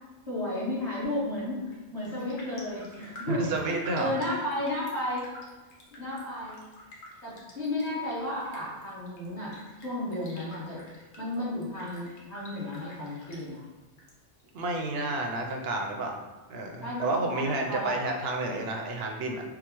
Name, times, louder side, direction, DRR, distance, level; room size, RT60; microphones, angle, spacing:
voice 1, 0.3-1.6 1.9-3.5 4.0-5.3 5.9-6.6 7.2-9.6 9.8-10.8 11.2-13.6 16.8-18.0, left 1 dB, 40° left, -8 dB, 1.4 m, -33 dB
Raindrop, 1.6-1.8 2.0-14.1 14.4-15.4 15.8-15.9, left 1 dB, 80° left, 1.1 m, -49 dB
voice 2, 3.3-4.1 14.5-16.2 16.5-19.4, right 2 dB, 70° right, 2 dB, 0.8 m, -30 dB
4.8 x 2.0 x 2.9 m, 1.2 s
omnidirectional pair, 1.1 m